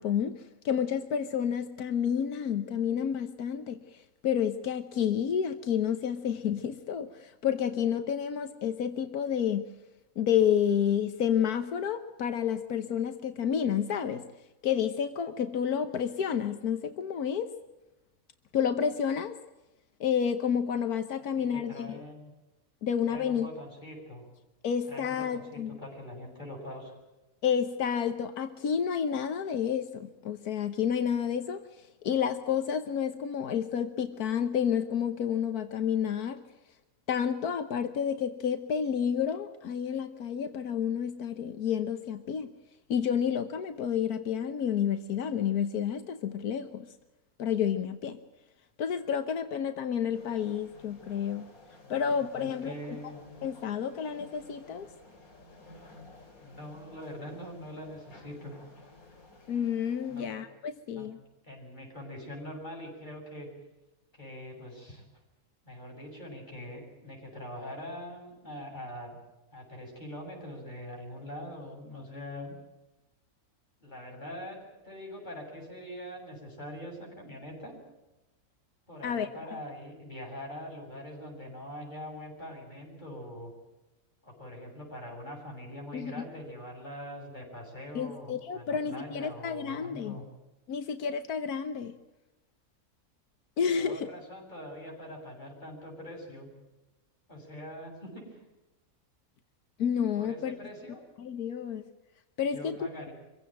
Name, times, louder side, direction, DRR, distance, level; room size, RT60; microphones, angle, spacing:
voice 1, 0.0-9.7 10.2-14.3 14.6-17.5 18.5-19.4 20.0-22.0 22.8-23.5 24.6-25.8 27.4-36.4 37.1-42.5 42.9-46.9 47.4-48.2 48.8-51.5 51.9-53.0 53.4-54.9 59.5-61.2 79.0-79.3 85.9-86.2 87.9-90.2 90.7-91.9 93.6-94.1 99.8-100.6 101.2-101.9 102.4-102.8, left 8 dB, 85° left, 9 dB, 1.6 m, -30 dB
voice 2, 21.2-22.3 23.1-24.3 24.9-26.9 51.8-52.1 52.3-53.2 56.4-58.5 60.1-60.3 60.9-61.1 61.4-63.5 64.1-65.1 65.7-69.2 69.5-72.6 73.8-77.7 78.9-83.5 84.2-90.2 93.7-96.5 97.3-98.4 100.1-101.0 102.5-103.1, equal, 30° left, 0 dB, 7.6 m, -43 dB
sound 1, 50.1-60.3, left 2 dB, 70° left, 4.0 m, -53 dB
25.0 x 16.0 x 9.0 m, 1.0 s
omnidirectional pair, 1.6 m